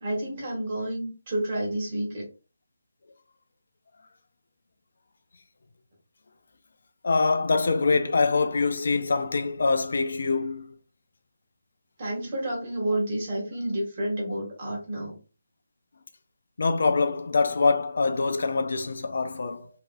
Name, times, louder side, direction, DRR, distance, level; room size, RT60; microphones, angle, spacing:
voice 1, 0.0-2.3 12.0-15.2, right 1 dB, 35° right, 1.6 m, -30 dB
voice 2, 7.0-10.7 16.6-19.7, left 4 dB, 60° left, 0.5 m, -24 dB
3.0 x 2.8 x 2.3 m
figure-of-eight pair, 165°, 0 cm